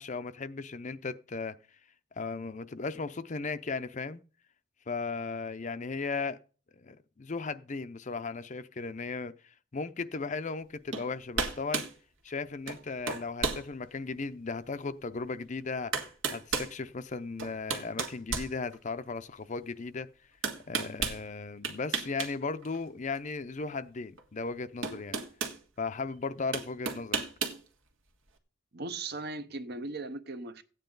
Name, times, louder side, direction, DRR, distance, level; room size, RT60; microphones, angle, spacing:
voice 1, 0.0-1.6 2.2-4.2 4.9-6.4 6.8-11.8 12.2-15.9 16.3-20.1 20.7-25.2 25.8-27.2, left 4 dB, 40° left, 0.5 m, -36 dB
sound 1, 10.9-11.1 11.3-11.9 12.7-12.8 13.1-13.6 14.2-14.3 15.4-15.5 15.9-16.7 17.4-19.1 20.4-21.2 21.6-22.3 22.6-22.8 24.2-24.3 24.8-25.6 26.5-27.6, right 5 dB, 80° right, 1.7 m, -33 dB
voice 2, 28.7-30.6, right 3 dB, 55° right, 0.9 m, -38 dB
14.5 x 9.0 x 3.9 m
head